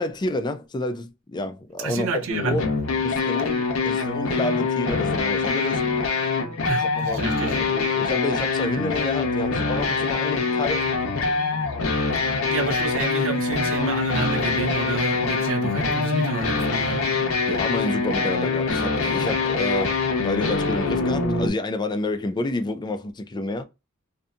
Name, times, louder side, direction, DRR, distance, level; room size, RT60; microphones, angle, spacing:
voice 1, 0.0-2.6 3.0-5.8 6.8-10.9 17.5-20.0 20.2-23.6, left 2 dB, 20° left, 0.3 m, -29 dB
voice 2, 1.8-2.6 6.7-7.6 12.5-17.0, right 4 dB, 70° right, 0.5 m, -29 dB
sound 1, 2.3-21.5, left 4 dB, 80° left, 0.7 m, -24 dB
2.6 x 2.5 x 2.2 m
head